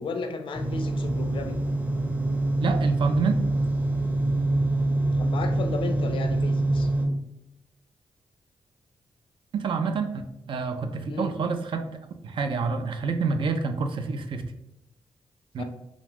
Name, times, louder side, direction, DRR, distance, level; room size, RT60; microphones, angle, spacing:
voice 1, 0.0-1.6 5.2-6.9 11.1-11.3 15.6-15.7, left 4 dB, 65° left, 7 dB, 0.4 m, -34 dB
sound 1, 0.5-7.1, right 2 dB, 15° right, 0.6 m, -25 dB
voice 2, 2.6-3.4 9.5-10.1 10.5-11.8 12.2-14.5 15.5-15.6, right 4 dB, 60° right, 7 dB, 0.4 m, -27 dB
2.5 x 2.2 x 3.3 m, 0.84 s
cardioid pair, 65°, 9 cm